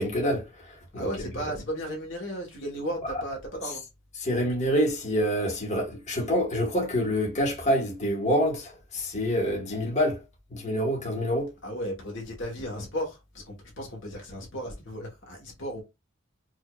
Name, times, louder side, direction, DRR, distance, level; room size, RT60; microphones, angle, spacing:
voice 1, 0.0-1.1 4.2-10.2 10.5-11.5, equal, 35° left, 1.3 m, -27 dB
voice 2, 0.9-3.8 11.6-15.8, equal, 60° left, 1.1 m, -35 dB
4.8 x 2.6 x 2.3 m
head